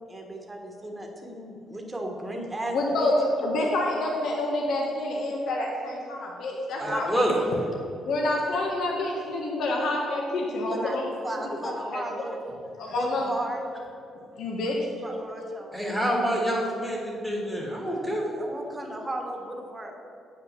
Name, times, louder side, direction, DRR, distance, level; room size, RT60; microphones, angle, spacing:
voice 1, 0.1-3.1 6.8-7.4 10.7-11.0 11.2-12.5 12.9-13.6 15.0-15.9 18.1-19.9, right 1 dB, 15° right, 1 dB, 1.3 m, -35 dB
voice 2, 2.7-7.1 8.0-11.1 11.6-12.0 12.8-13.2 14.4-14.9, left 2 dB, 65° left, -1 dB, 1.2 m, -27 dB
voice 3, 6.8-7.3 15.7-18.2, equal, 10° left, -3 dB, 1.7 m, -27 dB
8.9 x 5.9 x 6.7 m, 2.7 s
cardioid pair, 135°, 0 cm